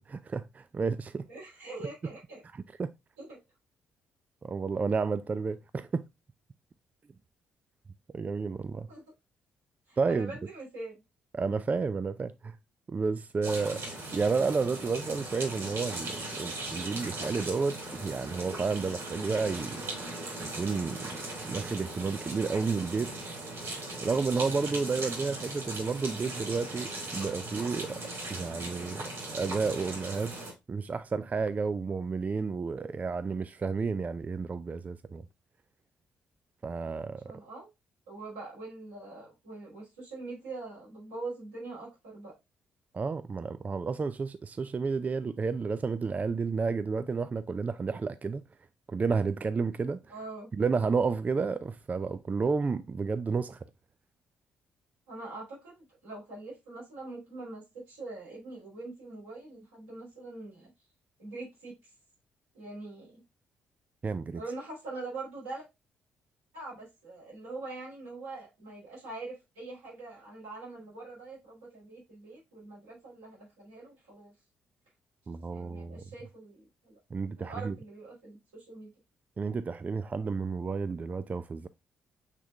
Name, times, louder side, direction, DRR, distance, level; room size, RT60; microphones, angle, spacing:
voice 1, 0.0-1.3 2.8-2.9 4.4-6.1 8.1-8.9 10.0-10.3 11.3-12.6 12.9-13.8 14.1-19.8 20.5-21.1 21.4-23.1 24.0-28.0 28.3-29.0 29.3-30.3 30.7-35.3 36.6-37.3 42.9-48.4 48.9-50.0 50.5-53.6 64.0-64.4 75.3-76.0 77.1-77.8 79.4-81.7, right 4 dB, 30° right, 0.4 m, -31 dB
voice 2, 1.3-2.4 3.2-3.4 8.9-9.0 9.9-11.0 37.3-37.7 38.1-42.3 50.1-50.5 55.1-60.7 61.2-61.8 62.5-63.2 64.3-65.6 66.5-74.3 75.5-77.0 77.4-78.9, right 3 dB, 85° right, 3.0 m, -43 dB
sound 1, 13.4-30.5, right 2 dB, 60° right, 2.5 m, -38 dB
6.5 x 3.5 x 2.3 m
hypercardioid pair, 45°, 5 cm